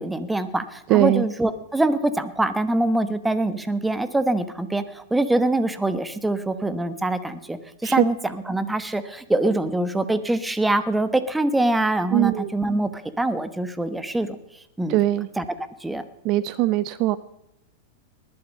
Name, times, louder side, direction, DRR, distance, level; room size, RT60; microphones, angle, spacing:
voice 1, 0.0-14.4 14.8-15.0 15.4-15.5 15.8-16.0, right 2 dB, 5° right, 12 dB, 1.1 m, -24 dB
voice 2, 0.9-1.2 7.8-8.0 12.1-12.5 14.9-15.3 16.2-17.2, right 16 dB, 45° right, 17 dB, 0.6 m, -20 dB
20.0 x 11.5 x 5.4 m, 0.84 s
hypercardioid pair, 135°, 0 cm